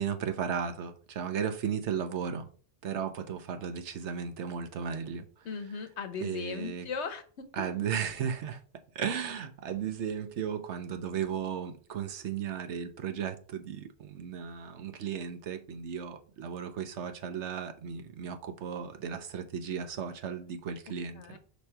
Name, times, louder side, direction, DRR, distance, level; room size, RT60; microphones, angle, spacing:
voice 1, 0.0-2.5 2.8-5.3 6.2-6.9 7.5-8.6 8.9-21.4, right 7 dB, 85° right, 1.1 m, -35 dB
voice 2, 5.4-7.5 21.2-21.4, left 5 dB, 80° left, 1.1 m, -37 dB
5.2 x 4.2 x 4.4 m
omnidirectional pair, 1.1 m